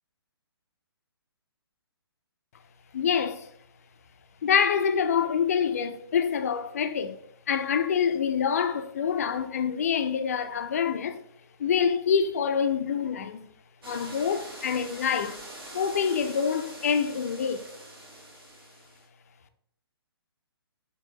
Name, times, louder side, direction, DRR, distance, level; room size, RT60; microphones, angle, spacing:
voice 1, 2.9-3.5 4.4-7.2 7.5-11.2 11.6-13.5 13.8-15.4 15.7-17.6, left 7 dB, 35° left, 0.3 m, -26 dB
sound 1, 13.8-19.1, right 1 dB, 60° right, 1.3 m, -44 dB
4.8 x 2.9 x 2.9 m
figure-of-eight pair, 130°, 13 cm